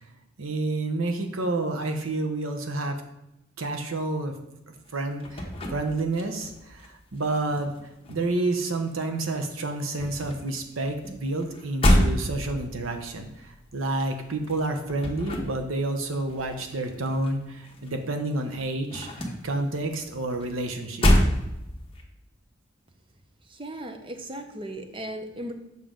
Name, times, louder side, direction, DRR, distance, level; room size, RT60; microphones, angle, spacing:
voice 1, 0.4-3.0 3.6-4.3 4.7-7.7 8.1-19.1 19.4-21.1, right 2 dB, 85° right, 5 dB, 0.9 m, -29 dB
sound 1, 4.9-6.9 7.1-9.1 9.3-18.0 18.3-22.0, left 1 dB, 30° left, 1.1 m, -28 dB
voice 2, 23.5-25.5, right 1 dB, 25° right, 5 dB, 0.7 m, -36 dB
7.3 x 5.7 x 3.8 m, 0.89 s
head